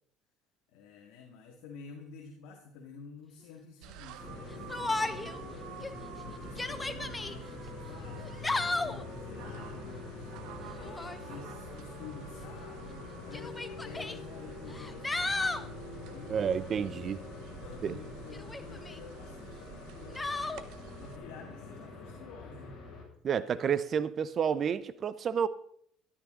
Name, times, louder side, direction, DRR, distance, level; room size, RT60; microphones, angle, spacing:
voice 1, 0.7-5.7 6.2-10.4 10.7-15.6 16.1-20.5 21.0-22.8, left 5 dB, 80° left, 2.2 m, -50 dB
sound 1, 3.8-21.2, right 12 dB, 80° right, 1.1 m, -50 dB
sound 2, 4.2-23.0, left 3 dB, 45° left, 6.1 m, -45 dB
Yell, 4.7-5.4 5.8-5.9 6.4-7.3 8.2-9.0 10.8-11.2 12.4-12.5 13.3-14.2 14.7-15.7 18.3-19.0 20.2-20.6, left 2 dB, 15° left, 0.9 m, -34 dB
voice 2, 16.3-17.2 17.8-18.0 23.2-25.5, right 7 dB, 45° right, 0.8 m, -30 dB
13.5 x 12.5 x 3.9 m
cardioid pair, 105°, 0 cm